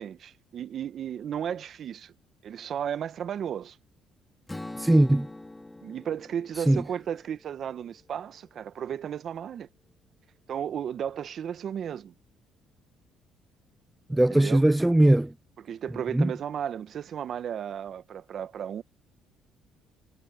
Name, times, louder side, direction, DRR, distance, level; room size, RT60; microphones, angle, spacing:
voice 1, 0.0-2.1 2.4-3.8 5.8-9.7 10.5-12.1 14.3-14.6 15.6-18.8, right 9 dB, 60° right, 1.6 m, -34 dB
Strum, 4.5-8.7, left 2 dB, 15° left, 2.3 m, -44 dB
voice 2, 4.8-5.3 6.7-6.8 14.1-15.3 16.1-16.3, right 1 dB, 10° right, 0.4 m, -20 dB
supercardioid pair, 75°, 0 cm